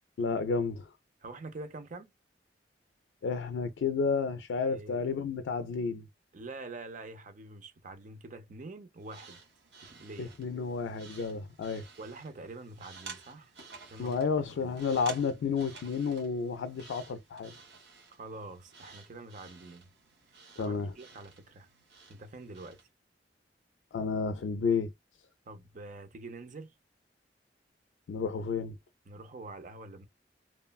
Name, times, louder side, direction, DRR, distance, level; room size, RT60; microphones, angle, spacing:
voice 1, 0.2-0.9 3.2-6.1 10.2-11.9 14.0-17.5 20.6-20.9 23.9-24.9 28.1-28.8, left 5 dB, 85° left, 0.3 m, -31 dB
voice 2, 1.2-2.1 4.7-5.0 6.3-9.4 9.8-10.3 12.0-13.5 13.8-14.1 14.6-14.7 18.1-19.9 20.6-21.7 22.1-22.8 25.5-26.7 29.1-30.1, right 2 dB, 45° right, 0.5 m, -45 dB
sound 1, 9.0-22.9, right 4 dB, 75° right, 1.2 m, -52 dB
3.0 x 2.0 x 2.3 m
head